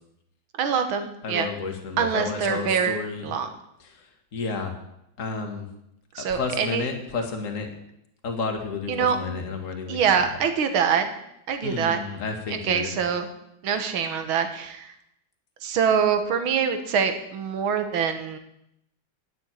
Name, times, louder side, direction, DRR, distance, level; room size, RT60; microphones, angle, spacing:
voice 1, 0.6-1.5 2.0-3.5 6.1-6.9 8.9-9.2 9.9-11.1 11.5-12.0 12.5-13.3 13.6-14.9 15.6-18.4, right 7 dB, 85° right, 8 dB, 2.0 m, -24 dB
voice 2, 1.2-3.3 4.3-4.7 5.2-5.7 6.3-7.7 8.2-10.0 11.6-12.9, left 4 dB, 40° left, 3 dB, 2.0 m, -31 dB
10.0 x 7.2 x 9.0 m, 0.80 s
omnidirectional pair, 2.2 m